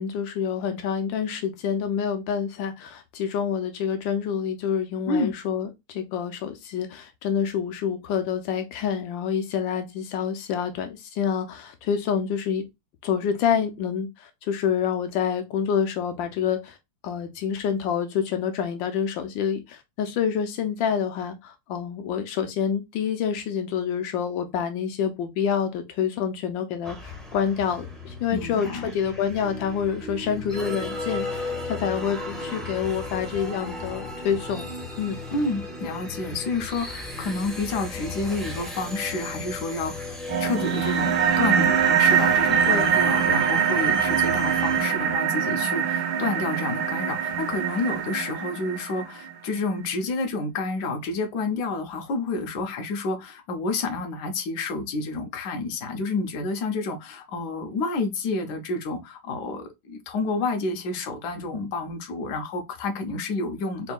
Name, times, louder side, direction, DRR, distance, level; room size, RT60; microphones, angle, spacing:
voice 1, 0.0-12.6 13.0-16.8 17.0-34.6 35.0-35.2 42.7-42.9, left 7 dB, 85° left, 1.4 m, -27 dB
sound 1, 26.8-44.8, left 2 dB, ahead, 0.6 m, -36 dB
voice 2, 28.3-28.9 35.3-63.9, left 3 dB, 65° left, 1.3 m, -29 dB
sound 2, 40.3-49.3, right 8 dB, 85° right, 1.5 m, -23 dB
4.3 x 3.6 x 2.3 m
omnidirectional pair, 2.0 m